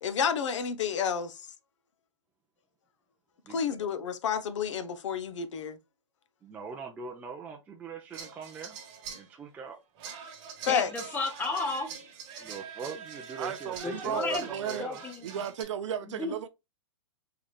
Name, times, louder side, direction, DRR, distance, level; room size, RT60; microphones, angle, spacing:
voice 1, 0.0-1.4 3.5-5.8 10.7-10.9, left 7 dB, 70° left, 0.8 m, -30 dB
voice 2, 6.4-8.8 9.1-9.8 12.4-15.0, right 4 dB, 10° right, 0.5 m, -41 dB
sound 1, 8.1-9.3 10.0-15.6, right 6 dB, 35° right, 1.3 m, -44 dB
voice 3, 10.7-11.9 13.8-14.5 14.8-15.3 16.1-16.4, left 3 dB, 10° left, 0.9 m, -33 dB
voice 4, 13.4-14.9 15.2-16.5, right 9 dB, 70° right, 0.5 m, -35 dB
3.8 x 3.2 x 2.3 m
hypercardioid pair, 145°, 16 cm